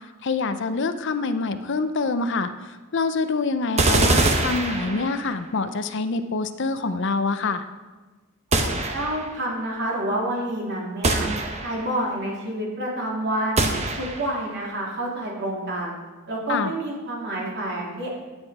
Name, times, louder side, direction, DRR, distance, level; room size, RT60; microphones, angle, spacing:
voice 1, 0.2-7.7 16.5-16.7, left 4 dB, 60° left, 10 dB, 0.6 m, -26 dB
sound 1, 3.8-5.4 8.5-9.4 11.0-12.0 13.6-14.4, right 2 dB, 30° right, 0.9 m, -23 dB
voice 2, 8.9-11.3 11.6-13.7 13.9-16.0 16.3-18.1, right 1 dB, 55° right, -3 dB, 2.8 m, -28 dB
10.5 x 8.1 x 4.9 m, 1.3 s
head